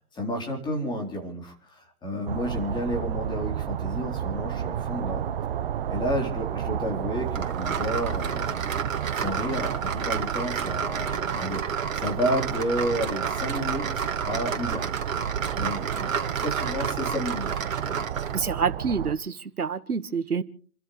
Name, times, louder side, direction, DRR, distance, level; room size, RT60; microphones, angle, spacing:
voice 1, 0.1-5.3 5.9-8.7 9.1-11.6 11.9-14.9 15.5-18.1, equal, 10° left, 3.9 m, -31 dB
sound 1, 2.3-19.1, right 9 dB, 40° right, 1.1 m, -32 dB
sound 2, 7.3-18.5, right 6 dB, 60° right, 2.6 m, -31 dB
voice 2, 18.3-20.4, right 6 dB, 80° right, 1.8 m, -27 dB
29.5 x 13.0 x 3.3 m
figure-of-eight pair, 140°, 44 cm